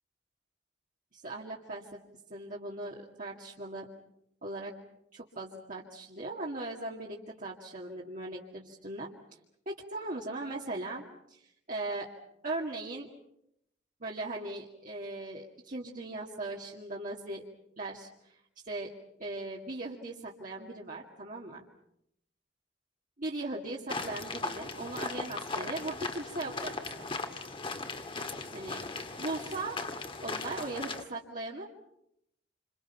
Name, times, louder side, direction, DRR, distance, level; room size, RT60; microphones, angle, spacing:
voice 1, 1.1-2.0 2.3-3.9 4.4-4.7 5.1-9.1 9.7-12.1 12.4-13.1 14.0-17.4 17.8-18.9 19.2-21.7 23.2-27.1 28.5-28.8 29.2-29.8 30.2-31.7, right 2 dB, 50° right, -3 dB, 2.3 m, -39 dB
sound 1, 23.9-31.0, left 3 dB, 30° left, 1.8 m, -38 dB
28.0 x 27.5 x 5.8 m, 0.79 s
head